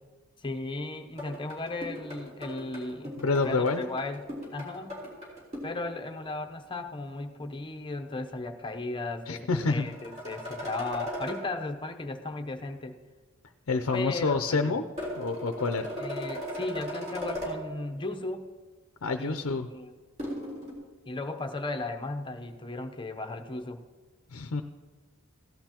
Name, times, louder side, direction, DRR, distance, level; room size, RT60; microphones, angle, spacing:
voice 1, 0.4-3.2 3.4-4.9 5.6-13.0 13.9-14.8 16.0-18.5 19.2-19.4 19.7-19.9 21.1-23.8, left 2 dB, 25° left, 4 dB, 0.8 m, -36 dB
sound 1, 1.2-5.8 9.5-11.4 15.0-17.6 20.2-20.7, equal, 35° right, 4.1 m, -37 dB
voice 2, 3.2-3.8 9.3-9.9 13.7-14.8 15.2-15.9 19.0-19.7 24.3-24.6, left 3 dB, 75° left, 7 dB, 0.6 m, -27 dB
16.5 x 11.5 x 2.9 m, 1.4 s
head